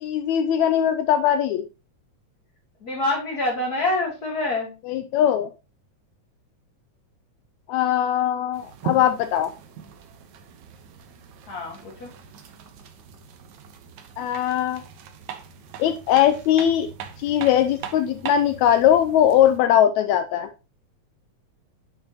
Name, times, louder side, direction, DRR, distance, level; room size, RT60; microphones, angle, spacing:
voice 1, 0.0-1.7 4.9-5.5 7.7-9.5 14.2-14.8 15.8-16.9 17.2-20.5, left 10 dB, 80° left, 1.8 m, -20 dB
voice 2, 2.8-4.7 11.5-12.1, left 2 dB, 35° left, 1.9 m, -26 dB
sound 1, 8.5-19.6, right 7 dB, 75° right, 2.4 m, -40 dB
9.0 x 6.2 x 2.9 m
omnidirectional pair, 3.4 m